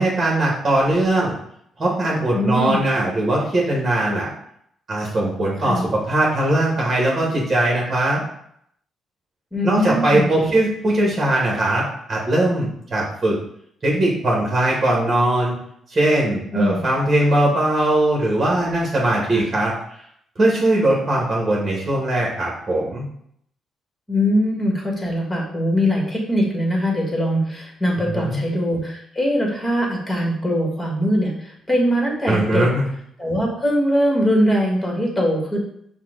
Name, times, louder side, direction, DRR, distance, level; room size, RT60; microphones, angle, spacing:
voice 1, 0.0-1.4 1.8-4.3 4.9-8.2 9.6-13.4 13.8-15.5 15.9-19.7 20.4-23.0 28.1-28.4 32.3-32.8, right 1 dB, 30° right, -4 dB, 1.5 m, -20 dB
voice 2, 2.3-2.8 5.6-5.9 9.5-10.6 16.5-16.8 19.3-19.4 24.1-32.7 33.2-35.6, equal, 15° left, -2 dB, 1.7 m, -21 dB
5.7 x 2.4 x 3.8 m, 0.70 s
cardioid pair, 90°, 0 cm